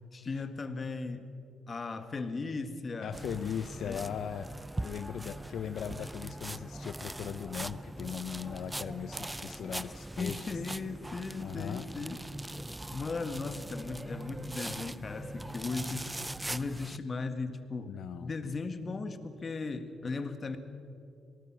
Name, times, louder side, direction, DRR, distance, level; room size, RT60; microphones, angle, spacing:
voice 1, 0.1-1.3 1.7-3.2 3.8-4.1 10.2-12.2 12.9-16.1 16.5-20.6, left 4 dB, 35° left, 9 dB, 1.8 m, -37 dB
voice 2, 3.0-4.5 4.8-10.5 11.4-11.9 17.9-18.3, left 8 dB, 70° left, 10 dB, 0.6 m, -39 dB
sound 1, 3.1-17.0, right 1 dB, 10° right, 0.5 m, -41 dB
26.5 x 19.0 x 6.1 m, 2.6 s
cardioid pair, 90°, 0 cm